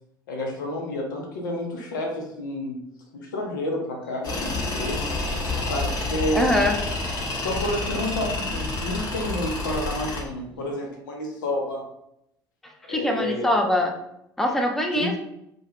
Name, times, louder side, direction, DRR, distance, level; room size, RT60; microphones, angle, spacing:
voice 1, 0.3-2.8 3.1-5.0 5.7-6.5 7.4-11.8 12.9-13.5 14.9-15.2, left 1 dB, 70° left, 2 dB, 0.6 m, -29 dB
Tools, 4.2-10.2, left 3 dB, 35° left, 0.9 m, -29 dB
voice 2, 6.3-6.8 12.9-13.9 14.4-15.2, left 1 dB, 5° left, 4 dB, 0.4 m, -23 dB
2.2 x 2.2 x 2.9 m, 0.78 s
figure-of-eight pair, 60°, 11 cm